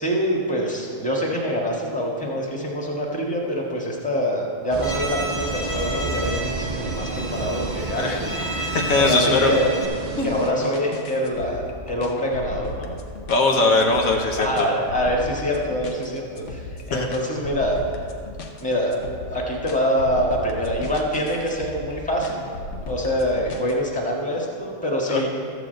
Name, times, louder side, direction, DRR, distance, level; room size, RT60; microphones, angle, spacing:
voice 1, 0.0-8.5 9.0-9.7 10.2-12.9 14.4-16.6 16.9-17.8 18.6-18.9 19.3-22.5 22.9-25.3, equal, 5° left, -2 dB, 1.5 m, -25 dB
sound 1, 4.7-10.5, right 4 dB, 65° right, 0.4 m, -31 dB
Bowed string instrument, 4.8-9.9, right 1 dB, 20° left, 1.8 m, -31 dB
voice 2, 8.6-9.5 10.2-10.3 13.3-14.7 16.9-17.1 25.1-25.3, left 3 dB, 75° left, 1 dB, 1.5 m, -20 dB
sound 2, 10.6-23.7, left 2 dB, 60° left, 1.2 m, -36 dB
13.0 x 5.0 x 7.8 m, 2.4 s
omnidirectional pair, 1.5 m